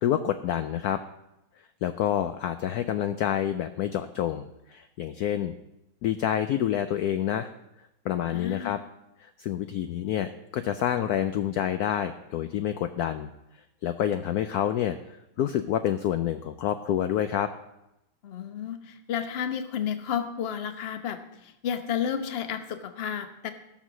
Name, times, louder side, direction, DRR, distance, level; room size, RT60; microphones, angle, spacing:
voice 1, 0.0-1.0 1.8-5.5 6.0-7.5 8.0-8.8 9.2-13.3 13.8-17.5, left 10 dB, 75° left, 9 dB, 0.9 m, -28 dB
voice 2, 8.3-8.8 18.2-23.5, left 8 dB, 45° left, 8 dB, 0.8 m, -32 dB
16.0 x 6.4 x 6.1 m, 0.89 s
omnidirectional pair, 2.1 m